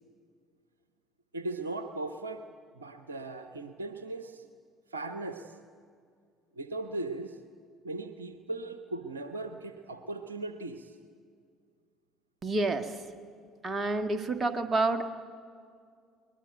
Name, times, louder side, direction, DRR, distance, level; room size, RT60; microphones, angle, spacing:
voice 1, 1.3-2.4 2.7-4.4 4.9-5.6 6.5-7.4 7.8-11.0, right 2 dB, 80° right, 8 dB, 0.9 m, -38 dB
voice 2, 12.4-12.9 13.6-15.1, right 2 dB, 30° right, 8 dB, 1.7 m, -28 dB
22.0 x 20.5 x 9.1 m, 2.2 s
figure-of-eight pair, 55°, 0 cm